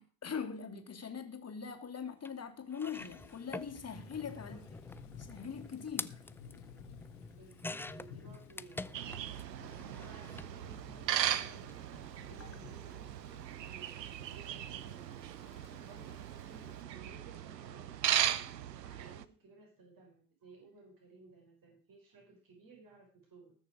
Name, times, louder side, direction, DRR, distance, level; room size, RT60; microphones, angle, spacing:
voice 1, 0.0-4.6 5.2-6.2 9.6-9.7 12.3-12.8, left 6 dB, 30° left, 2.8 m, -42 dB
sound 1, 2.2-2.3 2.7-9.4 9.7-10.5 11.5-11.7 12.0-12.1, left 2 dB, 5° left, 0.5 m, -46 dB
Thunder / Rain, 2.9-16.8, left 7 dB, 75° left, 2.5 m, -56 dB
voice 2, 4.2-4.7 7.3-9.2 9.5-15.5 15.8-18.5 18.8-23.5, right 3 dB, 45° right, 5.8 m, -58 dB
sound 2, 8.9-19.3, right 11 dB, 85° right, 0.7 m, -38 dB
20.0 x 6.7 x 5.0 m
figure-of-eight pair, 60°, 49 cm